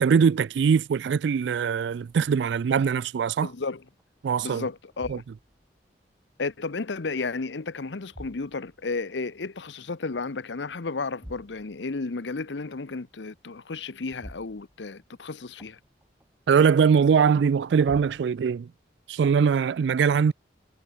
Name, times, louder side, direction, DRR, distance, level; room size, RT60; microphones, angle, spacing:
voice 1, 0.0-3.5 4.2-4.6 5.1-5.2 16.5-18.7 19.1-20.3, right 6 dB, 80° right, 0.3 m, -22 dB
voice 2, 3.4-3.8 4.4-5.2 6.4-15.8, left 3 dB, 90° left, 0.9 m, -33 dB
sound 1, 3.7-4.3 4.9-5.8 7.4-9.1 11.1-12.0 14.0-15.2 15.6-16.3 17.4-18.3, equal, 10° right, 2.3 m, -48 dB
head